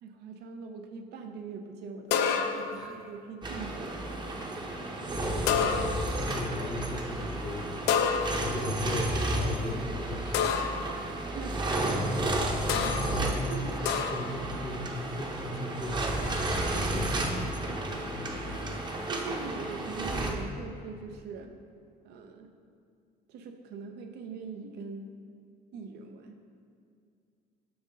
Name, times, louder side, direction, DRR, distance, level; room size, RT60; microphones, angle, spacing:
voice 1, 0.0-4.1 10.7-11.9 12.7-13.8 19.1-21.5 22.0-22.5 23.3-25.1 25.7-26.4, right 4 dB, 80° right, 5 dB, 0.6 m, -42 dB
sound 1, 2.1-2.9 5.5-6.2 7.9-8.7 10.3-10.9 12.7-13.2 13.9-14.4, left 7 dB, 85° left, 0.4 m, -28 dB
sound 2, 3.4-20.3, right 1 dB, 25° right, 0.7 m, -32 dB
voice 2, 5.1-7.9 8.4-10.5 12.2-16.6 16.9-19.4, left 1 dB, 20° left, 4 dB, 0.6 m, -39 dB
6.0 x 3.7 x 5.3 m, 2.4 s
cardioid pair, 110°, 17 cm